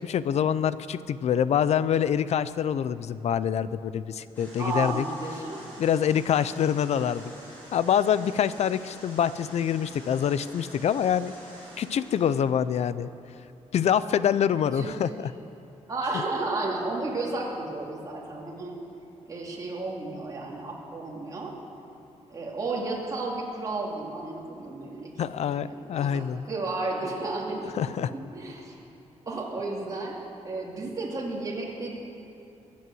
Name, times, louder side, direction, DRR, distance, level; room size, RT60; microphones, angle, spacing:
voice 1, 0.0-5.1 5.8-7.3 7.7-11.3 11.8-13.1 13.7-15.3 16.1-16.2 25.2-26.5 27.7-28.1, left 9 dB, 65° left, 15 dB, 0.5 m, -25 dB
sound 1, 4.3-12.3, equal, 15° left, 4.8 m, -47 dB
voice 2, 4.6-5.7 14.8-14.9 15.9-18.8 19.3-21.6 22.3-25.1 25.5-27.8 28.1-28.8 29.3-30.2 30.4-32.0, right 2 dB, 30° right, -3 dB, 2.5 m, -33 dB
22.0 x 8.5 x 7.7 m, 2.8 s
wide cardioid pair, 175°, 12 cm